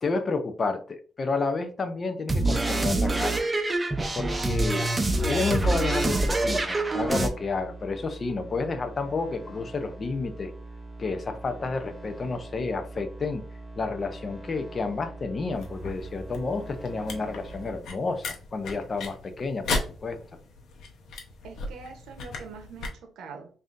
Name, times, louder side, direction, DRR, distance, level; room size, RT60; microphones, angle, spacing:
voice 1, 0.0-3.4 4.1-4.9 5.3-10.5 11.0-13.5 13.8-20.2, left 3 dB, 35° left, 9 dB, 0.6 m, -30 dB
sound 1, 2.3-7.3, right 2 dB, 20° right, 0.6 m, -25 dB
sound 2, 4.4-17.8, right 2 dB, 5° left, 1.7 m, -43 dB
sound 3, 15.5-22.9, left 3 dB, 70° left, 0.9 m, -37 dB
voice 2, 21.4-23.5, right 5 dB, 85° right, 3 dB, 0.9 m, -43 dB
5.4 x 2.7 x 2.5 m, 0.41 s
cardioid pair, 110°, 0 cm